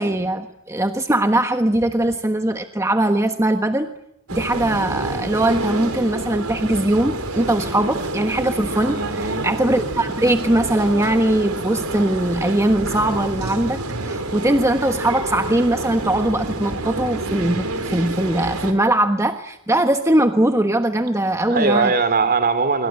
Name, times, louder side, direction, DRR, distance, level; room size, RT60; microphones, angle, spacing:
voice 1, 0.0-3.9 4.3-21.9, right 1 dB, 15° right, 7 dB, 1.3 m, -20 dB
sound 1, 4.3-18.7, right 2 dB, 75° right, 4.4 m, -28 dB
voice 2, 8.9-9.5 21.5-22.9, right 4 dB, 45° right, 12 dB, 2.9 m, -20 dB
27.5 x 24.0 x 7.7 m, 0.81 s
head